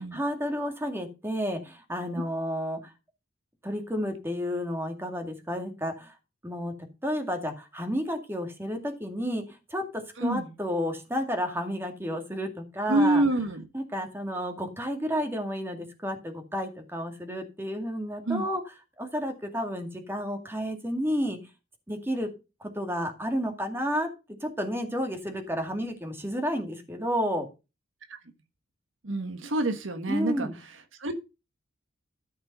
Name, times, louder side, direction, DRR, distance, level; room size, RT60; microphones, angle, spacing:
voice 1, 0.0-2.9 3.6-6.2 6.4-6.7 7.0-13.2 13.7-18.6 19.0-21.4 21.9-22.3 22.6-24.1 24.4-27.5 30.1-30.6, equal, 10° right, 2.2 m, -31 dB
voice 2, 10.2-10.5 12.9-13.6 18.2-18.4 28.1-28.2 29.0-31.1, right 2 dB, 70° right, 1.4 m, -27 dB
13.5 x 5.5 x 5.4 m
head